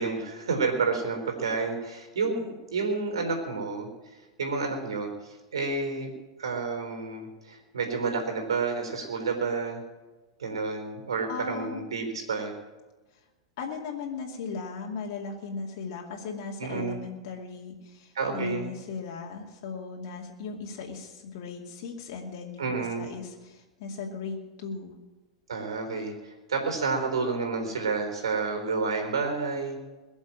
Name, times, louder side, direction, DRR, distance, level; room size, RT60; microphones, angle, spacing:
voice 1, 0.0-3.9 4.4-6.1 6.4-9.8 10.4-12.5 16.6-17.0 18.1-18.7 22.6-23.1 25.5-29.8, right 4 dB, 75° right, 4 dB, 4.1 m, -30 dB
voice 2, 11.3-11.9 13.6-24.9, left 5 dB, 55° left, -1 dB, 2.4 m, -37 dB
21.5 x 7.2 x 8.9 m, 1.2 s
figure-of-eight pair, 95°, 3 cm